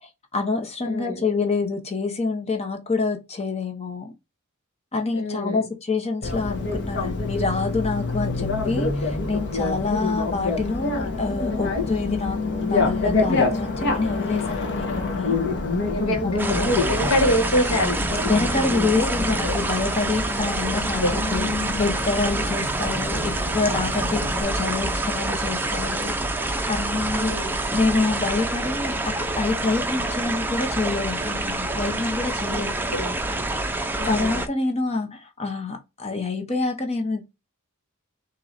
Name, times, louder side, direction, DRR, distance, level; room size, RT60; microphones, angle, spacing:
voice 1, 0.3-4.1 4.9-15.4 16.2-16.6 18.2-26.2 26.7-27.3 27.7-32.7 34.1-37.2, left 3 dB, 30° left, 0.8 m, -27 dB
voice 2, 0.8-1.2 5.1-5.6 15.9-16.3 16.5-18.0 21.0-21.2 27.1-27.6 32.5-33.2 34.0-34.4, equal, 80° left, 1.5 m, -25 dB
Bicycle, 6.2-24.4, left 3 dB, 55° left, 1.3 m, -27 dB
sound 1, 16.4-34.5, right 2 dB, 10° right, 0.5 m, -27 dB
6.0 x 3.0 x 2.6 m
head